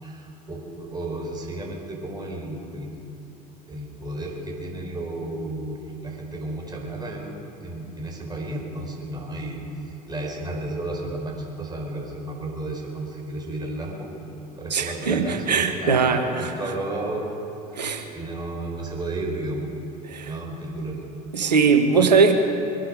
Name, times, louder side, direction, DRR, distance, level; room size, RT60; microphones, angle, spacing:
voice 1, 0.0-3.0 3.7-9.6 9.8-14.1 14.6-17.2 18.1-19.7 20.2-21.0, right 2 dB, 20° right, -1 dB, 4.5 m, -33 dB
voice 2, 14.7-16.5 17.8-18.1 20.1-20.3 21.3-22.4, right 5 dB, 80° right, 6 dB, 1.3 m, -20 dB
23.0 x 11.0 x 5.4 m, 3.0 s
figure-of-eight pair, 70°, 21 cm